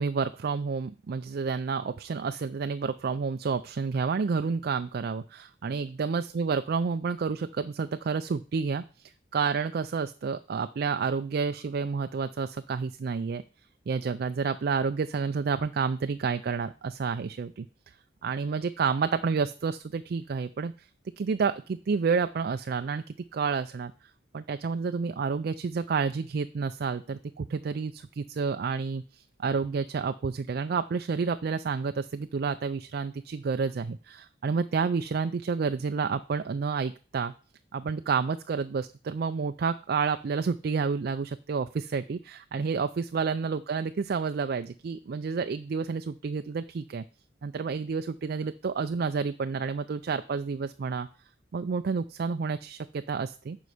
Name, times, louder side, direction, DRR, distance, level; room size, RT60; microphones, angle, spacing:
voice 1, 0.0-13.4 13.9-17.9 18.2-20.9 21.2-23.9 24.3-37.3 37.7-47.0 47.4-51.1 51.5-53.6, right 5 dB, 55° right, 10 dB, 0.4 m, -30 dB
9.3 x 5.6 x 4.9 m, 0.37 s
head